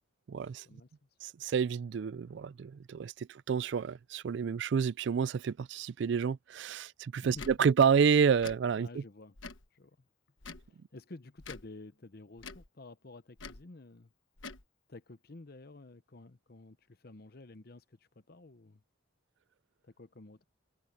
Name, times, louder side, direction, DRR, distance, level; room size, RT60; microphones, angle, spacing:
voice 1, 0.3-0.7 1.2-8.9, right 6 dB, 60° right, 0.3 m, -29 dB
voice 2, 7.2-7.6 8.8-9.4 9.7-10.0 10.6-14.1 14.9-18.8 19.8-20.4, left 2 dB, 50° left, 0.8 m, -51 dB
Tick / Tick-tock, 7.3-7.6 8.4-8.6 9.4-9.7 10.4-10.7 11.4-11.7 12.4-12.7 13.4-13.6 14.4-14.6, left 4 dB, 70° left, 1.3 m, -46 dB
head